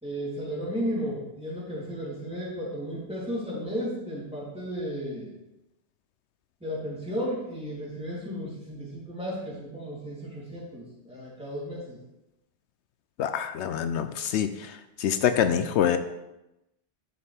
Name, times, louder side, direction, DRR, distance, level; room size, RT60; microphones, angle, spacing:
voice 1, 0.0-5.3 6.6-12.0, equal, 5° right, -7 dB, 3.1 m, -34 dB
voice 2, 13.2-14.5 15.0-16.0, left 9 dB, 80° left, 9 dB, 0.9 m, -25 dB
10.5 x 6.7 x 3.4 m, 0.93 s
omnidirectional pair, 1.2 m